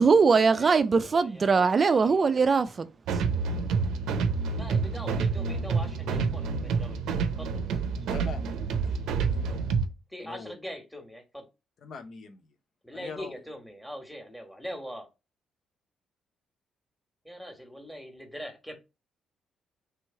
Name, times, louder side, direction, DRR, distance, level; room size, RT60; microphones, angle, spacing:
voice 1, 0.0-3.2, right 5 dB, 40° right, 0.3 m, -22 dB
voice 2, 0.5-2.3 4.5-7.8 10.1-11.5 12.8-15.1 17.2-18.8, equal, ahead, 1.4 m, -42 dB
sound 1, 3.1-9.9, right 5 dB, 85° right, 0.6 m, -28 dB
voice 3, 8.1-9.7 10.2-10.5 11.8-12.4 12.9-13.4, left 5 dB, 60° left, 0.8 m, -43 dB
3.4 x 3.1 x 4.5 m
cardioid pair, 90°, 0 cm